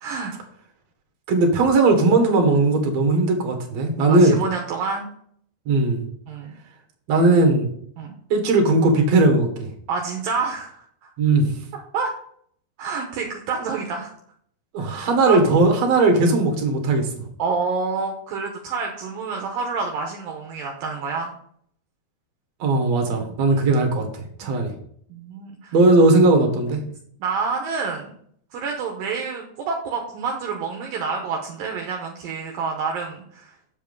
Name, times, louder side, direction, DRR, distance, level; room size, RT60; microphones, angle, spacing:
voice 1, 0.0-0.3 4.1-5.1 6.3-6.6 8.0-8.1 9.9-11.1 11.7-12.1 12.8-14.1 14.8-15.4 17.4-21.3 23.5-23.6 24.4-24.6 25.1-25.8 27.2-28.1 28.5-33.5, right 4 dB, 75° right, 1 dB, 2.5 m, -28 dB
voice 2, 1.3-4.4 5.7-6.1 7.1-7.7 8.3-9.7 11.2-11.5 14.7-17.1 22.6-24.1 24.4-24.7 25.7-26.8, right 2 dB, 50° right, 2 dB, 2.5 m, -18 dB
7.6 x 7.4 x 5.4 m, 0.64 s
omnidirectional pair, 4.6 m